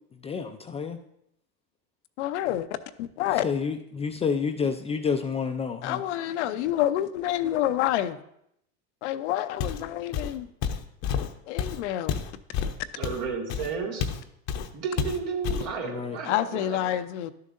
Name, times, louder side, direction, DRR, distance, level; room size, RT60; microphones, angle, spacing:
voice 1, 0.2-1.0 3.4-6.0 15.8-16.2, left 6 dB, 20° left, 6 dB, 0.4 m, -29 dB
voice 2, 2.2-2.7 3.0-3.4 5.8-8.2 9.0-10.5 11.5-12.2 16.2-17.3, left 12 dB, 75° left, 11 dB, 0.6 m, -28 dB
Walk footsteps, 9.6-9.9 10.1-14.2 14.5-14.7 15.0-15.7, left 7 dB, 50° left, 0.8 m, -30 dB
voice 3, 13.0-14.0 14.7-16.9, right 5 dB, 65° right, 0 dB, 2.0 m, -32 dB
12.0 x 6.6 x 2.6 m, 0.75 s
supercardioid pair, 110°, 35 cm